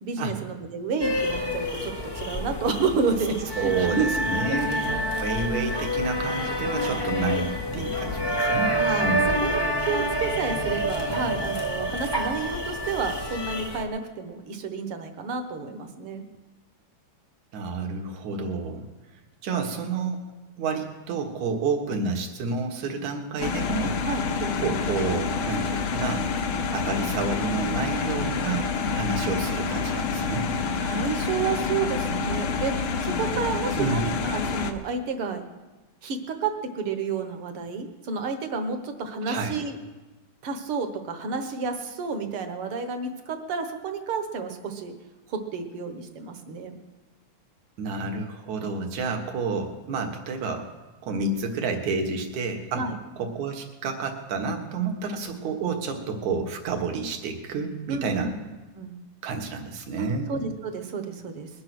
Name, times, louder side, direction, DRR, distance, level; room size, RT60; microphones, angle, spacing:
voice 1, 0.0-4.1 4.5-4.6 8.7-9.6 9.9-16.2 24.0-24.2 28.8-28.9 30.8-35.4 36.0-39.8 40.4-44.9 45.3-46.7 52.7-52.9 57.9-58.4 58.8-59.0 60.3-61.5, right 5 dB, 55° right, 6 dB, 1.8 m, -30 dB
sound 1, 1.0-13.8, equal, 40° left, 0.3 m, -28 dB
voice 2, 3.5-8.7 9.0-9.3 17.5-18.9 19.4-20.2 20.6-24.0 24.4-26.3 26.7-28.7 28.9-30.5 33.8-34.0 39.2-39.6 47.8-50.7 51.0-52.8 53.2-58.3 59.2-60.3, right 4 dB, 75° right, 3 dB, 2.9 m, -29 dB
sound 2, 23.4-34.7, left 5 dB, 60° left, 1.5 m, -28 dB
21.5 x 8.6 x 6.1 m, 1.2 s
omnidirectional pair, 3.4 m